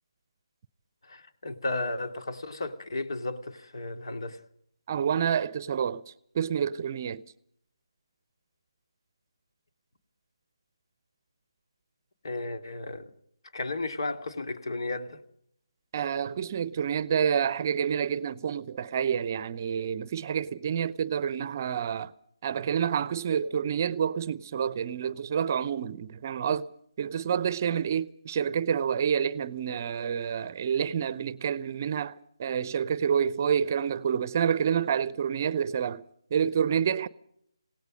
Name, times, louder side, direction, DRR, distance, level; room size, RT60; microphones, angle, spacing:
voice 1, 1.1-4.4 12.2-13.1 13.5-15.2, left 2 dB, 60° left, 2.7 m, -34 dB
voice 2, 4.9-6.0 6.3-7.2 15.9-22.1 22.4-26.7 27.0-36.0 36.3-37.1, right 8 dB, 35° right, 0.8 m, -28 dB
27.5 x 18.0 x 5.3 m
figure-of-eight pair, 150°, 3 cm